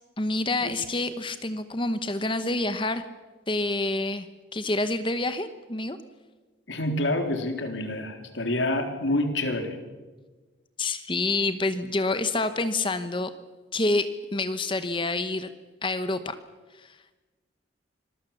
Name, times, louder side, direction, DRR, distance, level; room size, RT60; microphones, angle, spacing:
voice 1, 0.2-3.0 3.5-4.3 4.5-6.0 10.8-13.3 13.7-15.5 15.8-16.4 16.7-17.0, left 2 dB, 25° left, 11 dB, 1.0 m, -27 dB
voice 2, 6.7-9.8, left 1 dB, 75° left, 6 dB, 3.6 m, -27 dB
26.5 x 22.0 x 7.2 m, 1.3 s
head